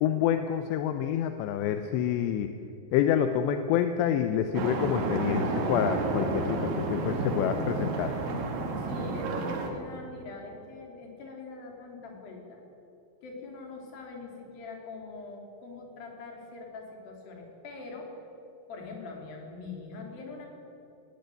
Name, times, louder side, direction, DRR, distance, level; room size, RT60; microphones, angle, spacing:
voice 1, 0.0-2.5 2.9-8.1, left 9 dB, 80° left, 8 dB, 2.9 m, -27 dB
sound 1, 4.6-9.7, right 3 dB, 85° right, 4.3 m, -30 dB
voice 2, 8.8-12.6 13.2-18.2 18.7-20.5, left 3 dB, 55° left, 1 dB, 4.7 m, -43 dB
18.5 x 15.5 x 9.0 m, 2.8 s
omnidirectional pair, 5.3 m